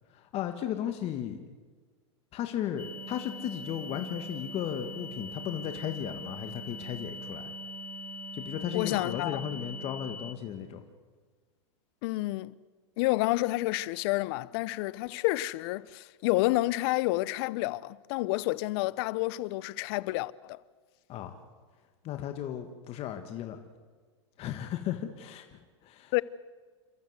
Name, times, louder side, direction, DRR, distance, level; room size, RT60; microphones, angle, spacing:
voice 1, 0.1-1.5 2.3-7.5 8.3-10.8 21.1-21.4 22.0-23.6 24.4-26.1, left 10 dB, 40° left, 1.7 m, -35 dB
sound 1, 2.7-10.8, right 9 dB, 70° right, 2.5 m, -46 dB
sound 2, 2.8-10.3, left 4 dB, 10° left, 1.1 m, -43 dB
voice 2, 8.7-9.4 12.0-12.6 13.0-20.6 26.1-26.2, left 19 dB, 55° left, 0.7 m, -29 dB
28.5 x 14.0 x 8.1 m
hypercardioid pair, 115°, 15 cm